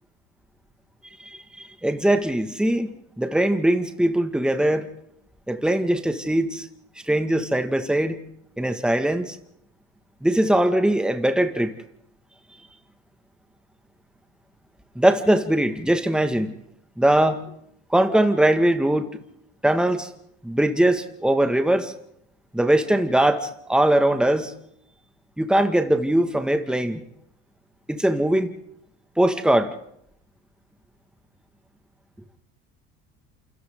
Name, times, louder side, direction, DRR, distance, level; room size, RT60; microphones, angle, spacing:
voice 1, 1.2-4.9 5.5-6.7 7.1-8.2 8.6-9.4 10.2-11.7 15.0-16.5 17.0-17.4 17.9-19.2 19.6-20.1 20.4-21.9 22.5-24.5 25.4-27.0 27.9-28.5 29.2-29.7, right 1 dB, 5° right, 1.9 m, -21 dB
28.5 x 26.5 x 3.9 m
supercardioid pair, 80°, 29 cm